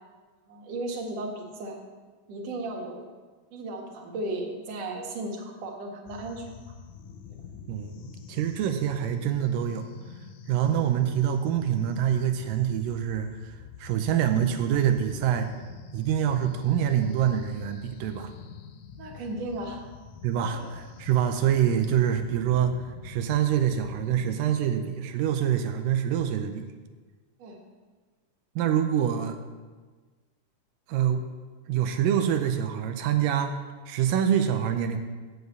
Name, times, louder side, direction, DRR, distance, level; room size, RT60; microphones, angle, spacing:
voice 1, 0.5-1.8 2.3-3.1 3.5-6.5 10.6-10.7 19.0-19.8 20.5-20.7 27.4-27.6, right 2 dB, 55° right, 0 dB, 2.4 m, -35 dB
sound 1, 6.1-24.6, left 7 dB, 75° left, 2.0 m, -46 dB
voice 2, 7.7-9.9 10.5-15.5 15.9-18.3 20.2-26.7 28.6-29.4 30.9-31.3 31.7-33.6 33.9-35.0, right 9 dB, 90° right, 6 dB, 2.3 m, -26 dB
8.0 x 6.9 x 8.0 m, 1.4 s
omnidirectional pair, 3.8 m